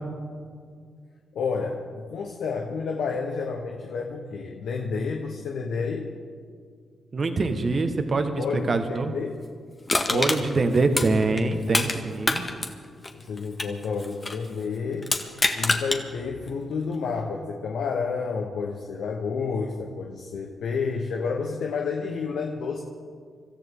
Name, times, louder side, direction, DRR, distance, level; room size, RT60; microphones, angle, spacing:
voice 1, 1.3-6.1 8.4-9.4 10.1-11.0 11.3-11.4 13.1-15.1 15.5-22.8, left 5 dB, 75° left, 2 dB, 1.2 m, -30 dB
voice 2, 7.1-9.1 10.1-12.5, right 3 dB, 50° right, 7 dB, 1.6 m, -24 dB
Crushing, 9.9-12.0 12.2-14.5 15.0-16.0 16.5-16.6, left 2 dB, 35° left, 1.8 m, -26 dB
25.0 x 14.0 x 3.8 m, 2.1 s
supercardioid pair, 45°, 0 cm